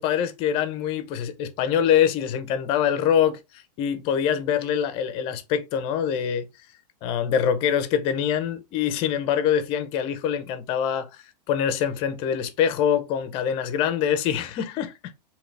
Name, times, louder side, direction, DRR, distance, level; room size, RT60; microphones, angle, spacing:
voice 1, 0.0-6.4 7.0-15.1, left 8 dB, 25° left, 0.5 m, -24 dB
3.8 x 2.8 x 3.2 m
supercardioid pair, 160°, 21 cm